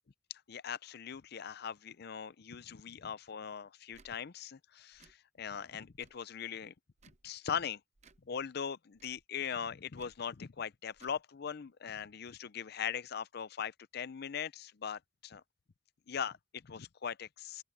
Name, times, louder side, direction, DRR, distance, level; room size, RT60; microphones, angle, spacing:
voice 1, 0.3-6.7 7.2-7.8 8.3-15.4 16.1-17.6, left 7 dB, 55° left, 0.5 m, -40 dB
Tick / Tick-tock, 3.9-4.1 4.9-5.2 5.9-6.2 7.0-7.3 8.0-8.2 8.9-9.2 9.9-10.2 10.9-11.2, right 4 dB, 35° right, 0.8 m, -62 dB
open air
head